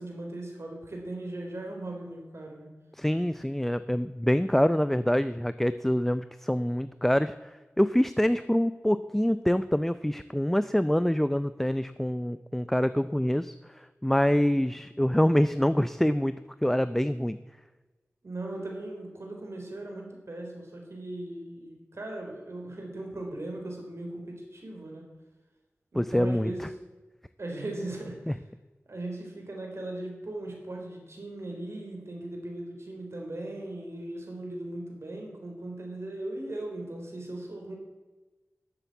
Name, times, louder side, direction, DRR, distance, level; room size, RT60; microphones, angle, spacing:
voice 1, 0.0-2.7 18.2-25.1 25.9-26.8 27.4-28.4 28.9-37.7, right 1 dB, 65° right, 1 dB, 3.7 m, -38 dB
voice 2, 3.0-17.4 25.9-26.7 28.3-28.4, equal, 5° left, 13 dB, 0.4 m, -26 dB
12.0 x 8.1 x 8.1 m, 1.2 s
wide cardioid pair, 75°, 5 cm